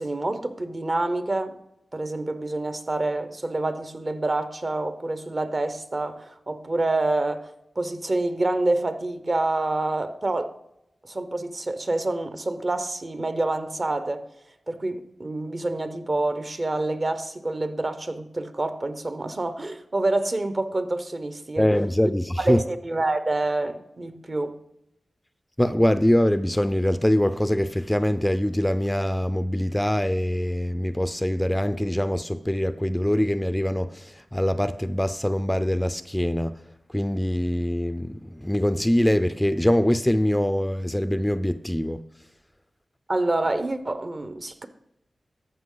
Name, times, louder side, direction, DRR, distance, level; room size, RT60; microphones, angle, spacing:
voice 1, 0.0-1.5 1.9-10.5 11.0-14.3 14.7-21.7 22.4-24.6 43.1-44.7, right 2 dB, 45° right, 0.9 m, -27 dB
voice 2, 21.6-22.6 25.6-36.6 36.9-42.0, left 1 dB, 10° left, 0.4 m, -23 dB
13.5 x 5.5 x 3.8 m
cardioid pair, 55°, 0 cm